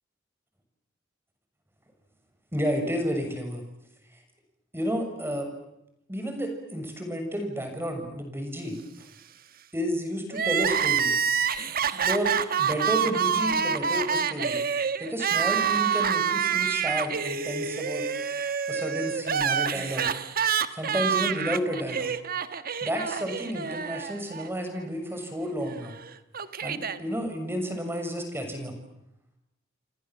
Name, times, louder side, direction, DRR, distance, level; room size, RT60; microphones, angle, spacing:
voice 1, 2.5-3.6 4.7-5.5 6.1-8.8 9.7-11.1 11.9-14.6 15.0-18.1 18.7-20.1 20.7-22.1 22.8-25.9 26.6-28.7, equal, 10° right, 5 dB, 6.9 m, -31 dB
Crying sobbing, 10.3-24.5 24.8-24.9 25.8-27.0, right 7 dB, 50° right, 1.4 m, -27 dB
29.0 x 26.5 x 7.6 m, 0.84 s
head